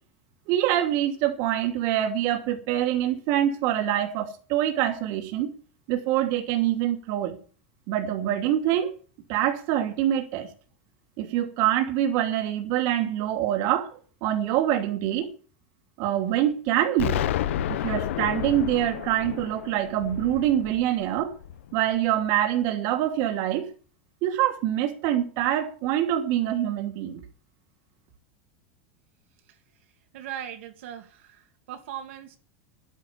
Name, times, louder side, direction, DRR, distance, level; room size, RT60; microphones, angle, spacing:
voice 1, 0.5-5.5 5.9-7.4 7.9-8.9 9.3-10.5 11.2-15.3 16.0-17.2 17.7-21.3 21.7-23.7 24.2-27.2, right 11 dB, 60° right, 2.7 m, -25 dB
Explosion, 17.0-21.8, left 11 dB, 85° left, 1.0 m, -31 dB
voice 2, 30.1-32.4, right 10 dB, 80° right, 2.6 m, -39 dB
10.5 x 10.0 x 8.7 m
supercardioid pair, 130°, 7 cm